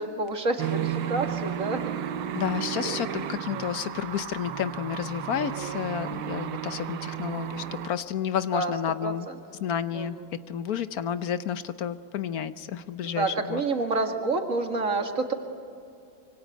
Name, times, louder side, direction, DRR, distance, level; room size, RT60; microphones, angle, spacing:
voice 1, 0.0-2.0 2.8-3.0 3.5-3.8 5.3-5.8 8.5-8.7 9.0-9.3 9.9-10.3 13.0-15.3, right 3 dB, 45° right, 5 dB, 2.3 m, -29 dB
sound 1, 0.6-7.9, right 10 dB, 80° right, 1.6 m, -33 dB
voice 2, 2.3-9.3 9.6-10.2 10.5-13.6, left 9 dB, 60° left, 13 dB, 1.1 m, -31 dB
26.0 x 24.0 x 9.2 m, 2.5 s
omnidirectional pair, 2.0 m